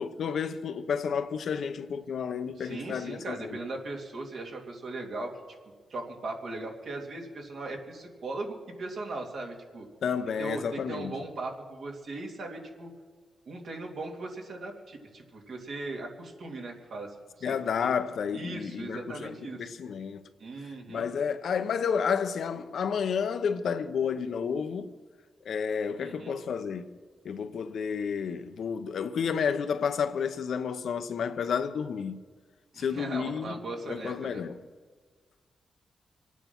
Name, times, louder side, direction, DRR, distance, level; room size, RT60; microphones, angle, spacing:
voice 1, 0.0-3.6 10.0-11.2 17.4-20.2 20.9-24.9 25.4-27.0 27.2-32.2 32.8-34.6, left 6 dB, 75° left, 0.8 m, -31 dB
voice 2, 2.6-5.3 5.9-9.9 10.4-12.9 13.5-17.5 17.8-17.9 18.3-19.7 20.4-21.1 26.0-26.3 32.7-34.4, right 2 dB, 70° right, 2.6 m, -38 dB
25.5 x 9.3 x 6.0 m
cardioid pair, 85°, 0 cm